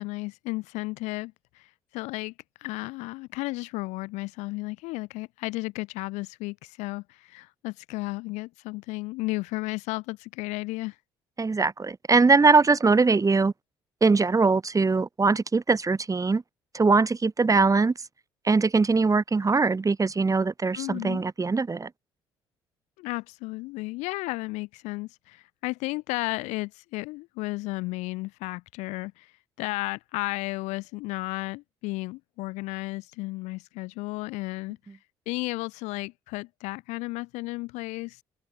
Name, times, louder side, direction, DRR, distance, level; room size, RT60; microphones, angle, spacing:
voice 1, 0.0-11.0 20.7-21.2 23.0-35.0 35.3-38.2, left 22 dB, 70° left, 4.4 m, -33 dB
voice 2, 11.4-13.5 14.0-16.4 16.7-17.9 18.4-21.9, right 4 dB, 25° right, 5.1 m, -21 dB
figure-of-eight pair, 50°, 13 cm